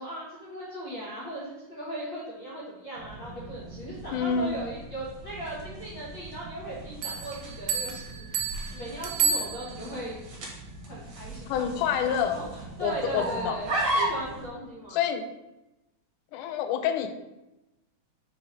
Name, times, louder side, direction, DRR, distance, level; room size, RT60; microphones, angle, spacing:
voice 1, 0.0-10.2 10.9-11.7 12.0-15.0, right 1 dB, 55° left, -7 dB, 1.4 m, -38 dB
sound 1, 3.0-14.5, right 1 dB, 50° right, 1.6 m, -36 dB
voice 2, 4.1-4.6 11.5-12.4 12.8-13.6 14.9-15.3 16.3-17.1, left 8 dB, 90° left, 8 dB, 2.1 m, -27 dB
sound 2, 7.0-10.1, right 6 dB, 75° right, 1.8 m, -31 dB
4.7 x 4.2 x 5.1 m, 0.97 s
omnidirectional pair, 3.5 m